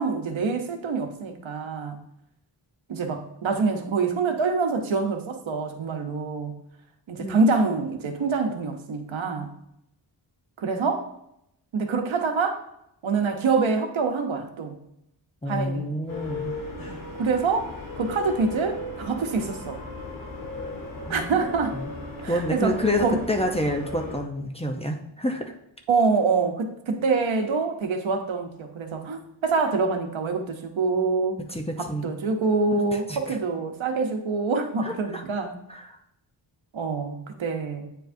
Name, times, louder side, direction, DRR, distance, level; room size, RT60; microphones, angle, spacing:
voice 1, 0.0-2.0 2.9-6.6 7.1-9.5 10.6-11.1 11.7-12.6 13.0-14.8 15.5-16.0 17.2-19.8 21.1-21.8 22.2-23.2 25.9-31.4 31.8-35.5 36.7-37.9, right 4 dB, 75° right, 5 dB, 0.9 m, -26 dB
voice 2, 15.4-16.5 21.1-21.9 22.3-25.5 31.5-32.1 32.7-33.4 34.8-35.2 35.7-36.0, left 1 dB, 15° left, 2 dB, 0.5 m, -29 dB
sound 1, 16.1-24.2, left 2 dB, 45° left, 1.4 m, -36 dB
9.0 x 4.6 x 2.6 m, 0.80 s
wide cardioid pair, 125°, 47 cm